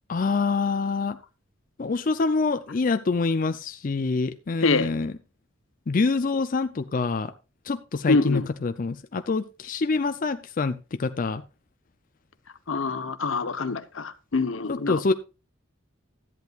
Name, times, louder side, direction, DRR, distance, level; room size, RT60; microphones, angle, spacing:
voice 1, 0.1-1.2 1.8-5.1 5.9-7.3 7.6-11.4 14.7-15.1, left 4 dB, 45° left, 0.5 m, -26 dB
voice 2, 8.1-8.5 12.7-15.0, left 3 dB, 80° left, 1.0 m, -25 dB
13.5 x 11.0 x 2.4 m
head